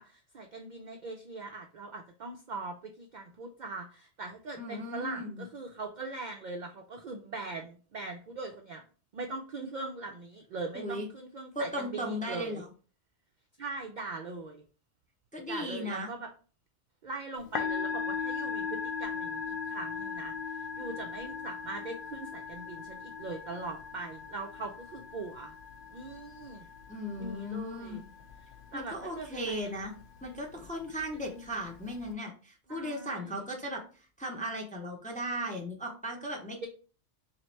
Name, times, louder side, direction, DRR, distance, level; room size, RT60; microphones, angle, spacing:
voice 1, 0.0-8.8 9.1-12.6 13.6-14.6 15.4-16.3 17.0-25.5 25.9-26.7 27.2-28.0 28.7-30.0 31.1-31.4 32.7-33.4 36.6-36.7, right 3 dB, 60° right, 3 dB, 0.5 m, -41 dB
voice 2, 4.6-5.5 10.7-11.1 11.5-12.7 15.3-16.1 26.9-28.1 28.7-29.9 30.2-33.8 34.2-36.7, equal, 10° left, 0 dB, 0.5 m, -36 dB
Musical instrument, 17.4-32.1, left 6 dB, 60° left, 0.7 m, -39 dB
3.0 x 2.8 x 4.4 m, 0.38 s
omnidirectional pair, 1.2 m